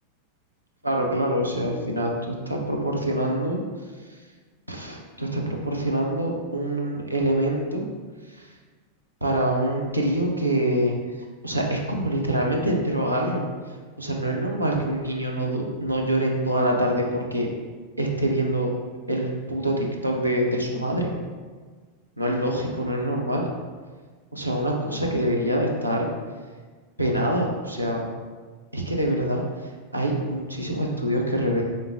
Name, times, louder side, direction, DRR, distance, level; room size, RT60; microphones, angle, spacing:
voice 1, 0.8-3.6 4.0-4.2 4.7-7.9 8.3-8.5 9.2-10.9 11.4-13.4 14.0-17.5 18.0-18.7 19.1-21.1 22.2-23.5 24.3-26.1 27.0-28.1 28.7-31.6, right 1 dB, 85° right, 0 dB, 0.6 m, -25 dB
3.8 x 3.7 x 2.6 m, 1.5 s
figure-of-eight pair, 90°, 0 cm